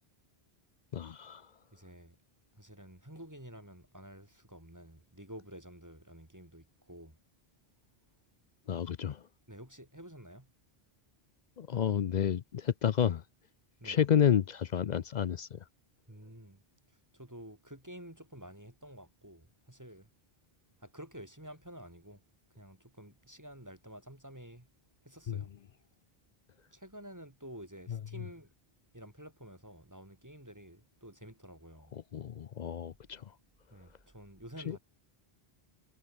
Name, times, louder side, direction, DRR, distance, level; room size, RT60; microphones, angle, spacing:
voice 1, 0.9-1.5 8.7-9.2 11.6-13.2 13.8-15.6 25.3-25.4 31.9-33.3 34.7-34.8, left 9 dB, 55° left, 0.6 m, -30 dB
voice 2, 1.7-2.2 2.5-7.2 9.5-10.5 13.8-14.0 16.1-16.6 16.9-20.1 20.8-22.2 22.5-24.7 25.0-25.5 26.7-28.5 28.9-31.9 33.7-34.8, right 1 dB, 15° right, 3.1 m, -50 dB
omnidirectional pair, 1.0 m